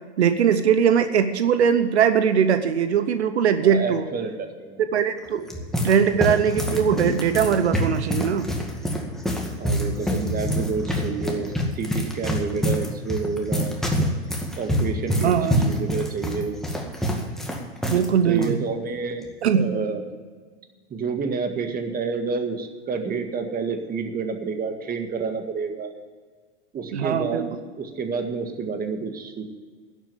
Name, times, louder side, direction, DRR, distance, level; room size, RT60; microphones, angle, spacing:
voice 1, 0.2-4.1 4.9-5.5 5.8-8.5 15.2-15.8 17.9-18.6 19.4-19.7 26.9-27.5, right 8 dB, 90° right, 10 dB, 0.9 m, -20 dB
voice 2, 3.6-4.8 9.6-13.8 14.6-16.6 18.3-19.2 19.5-20.0 20.9-25.9 26.7-27.5 27.8-29.4, right 5 dB, 25° right, 6 dB, 1.8 m, -29 dB
sound 1, 5.2-18.1 18.3-18.5 19.2-19.5, equal, ahead, 2.0 m, -26 dB
11.0 x 8.0 x 9.1 m, 1.5 s
hypercardioid pair, 105°, 32 cm